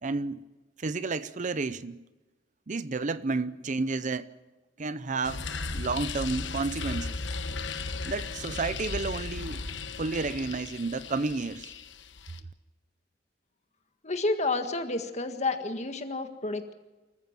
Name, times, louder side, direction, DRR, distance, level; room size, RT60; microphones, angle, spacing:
voice 1, 0.0-0.4 0.8-2.0 2.7-4.3 4.8-7.2 8.1-9.6 10.0-11.7, right 3 dB, 40° right, 0.6 m, -31 dB
sound 1, 5.2-12.4, left 4 dB, 70° left, 1.2 m, -36 dB
voice 2, 14.0-16.7, left 3 dB, 35° left, 1.8 m, -30 dB
26.0 x 14.5 x 7.4 m
head